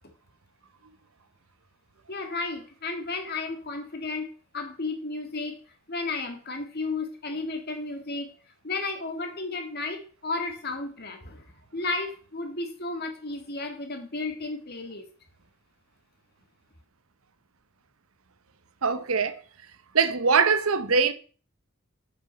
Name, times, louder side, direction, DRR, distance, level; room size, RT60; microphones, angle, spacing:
voice 1, 2.1-5.6 5.9-8.3 8.6-11.4 11.7-15.1, left 3 dB, 50° left, 1.9 m, -33 dB
voice 2, 18.8-19.4 19.9-21.1, right 5 dB, 90° right, 0.9 m, -22 dB
8.4 x 6.1 x 5.4 m
head